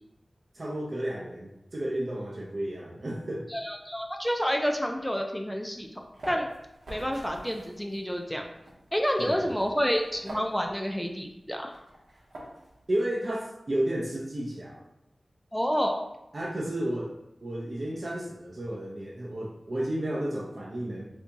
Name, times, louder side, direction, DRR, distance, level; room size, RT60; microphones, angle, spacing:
voice 1, 0.5-3.5 9.2-9.5 12.9-14.8 16.3-17.1 17.4-21.0, right 1 dB, 55° right, -4 dB, 0.5 m, -32 dB
voice 2, 3.5-5.9 6.3-6.5 6.9-8.5 8.9-11.7 15.5-16.0, equal, 5° left, 2 dB, 0.4 m, -29 dB
sound 1, 5.8-12.8, right 1 dB, 90° right, 0.8 m, -47 dB
2.8 x 2.7 x 3.4 m, 0.87 s
wide cardioid pair, 50°, 0 cm